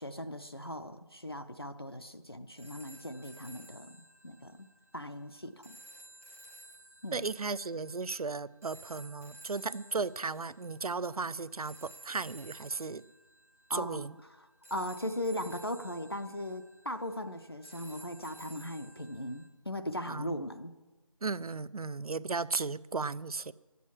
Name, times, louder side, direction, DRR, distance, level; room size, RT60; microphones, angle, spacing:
voice 1, 0.0-4.7 4.9-5.8 7.0-7.2 13.7-14.0 14.7-20.7, left 1 dB, 40° left, 0.5 m, -38 dB
sound 1, 2.6-19.5, right 1 dB, 25° right, 0.8 m, -55 dB
voice 2, 7.1-13.0 13.7-14.2 20.1-20.4 21.2-23.5, right 4 dB, 85° right, 0.5 m, -35 dB
10.0 x 8.4 x 7.3 m
figure-of-eight pair, 175°, 19 cm